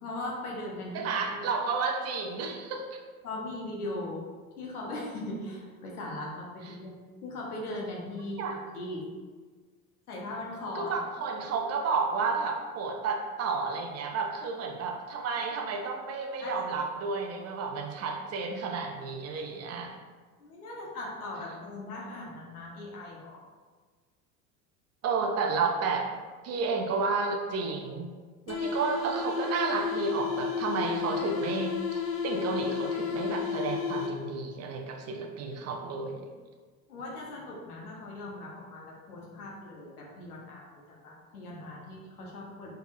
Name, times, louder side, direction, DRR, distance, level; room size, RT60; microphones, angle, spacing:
voice 1, 0.0-1.5 3.2-4.2 4.6-6.9 7.2-8.4 8.7-9.0 10.1-10.9 15.8-16.0 16.4-16.7 20.4-23.4 36.9-42.7, left 1 dB, 85° left, -2 dB, 1.0 m, -39 dB
voice 2, 0.9-3.0 8.4-8.6 10.8-19.9 25.0-26.1 26.4-28.1 28.5-36.3, right 4 dB, 35° right, 2 dB, 0.5 m, -31 dB
sound 1, 28.5-34.4, left 6 dB, 35° left, 0.5 m, -32 dB
3.4 x 3.2 x 2.5 m, 1.5 s
hypercardioid pair, 80°, 44 cm